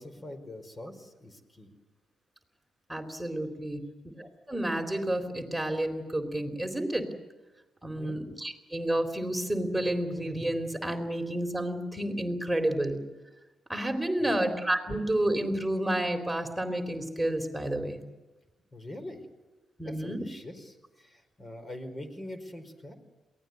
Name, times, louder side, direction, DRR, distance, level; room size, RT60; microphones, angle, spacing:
voice 1, 0.0-1.7 7.9-8.2 14.2-14.4 18.7-19.2 19.8-22.9, left 1 dB, 30° left, 8 dB, 4.8 m, -43 dB
voice 2, 2.9-3.9 4.2-7.1 7.8-13.0 13.7-18.0 19.8-20.2, right 1 dB, 5° right, 4 dB, 3.8 m, -30 dB
22.5 x 17.5 x 9.6 m, 1.1 s
supercardioid pair, 55°, 0 cm